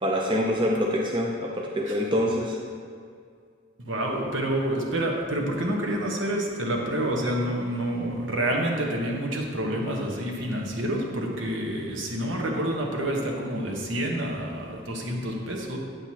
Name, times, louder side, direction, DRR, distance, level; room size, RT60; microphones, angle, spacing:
voice 1, 0.0-2.6, equal, 25° right, -2 dB, 0.6 m, -25 dB
voice 2, 3.9-15.8, right 1 dB, 70° right, 0 dB, 1.1 m, -28 dB
9.0 x 7.8 x 2.9 m, 2.2 s
head